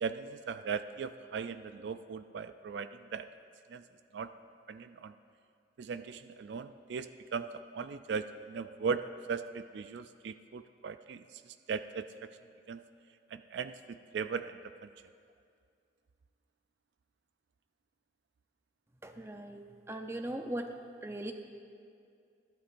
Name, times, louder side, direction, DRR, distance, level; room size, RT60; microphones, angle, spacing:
voice 1, 0.0-3.3 3.7-3.8 4.1-4.3 4.7-5.1 5.8-12.3 12.7-12.8 13.3-14.9, right 5 dB, 75° right, 11 dB, 0.4 m, -38 dB
voice 2, 19.0-20.7 21.0-21.3, right 1 dB, 15° right, 5 dB, 0.7 m, -39 dB
20.5 x 11.5 x 2.6 m, 2.4 s
head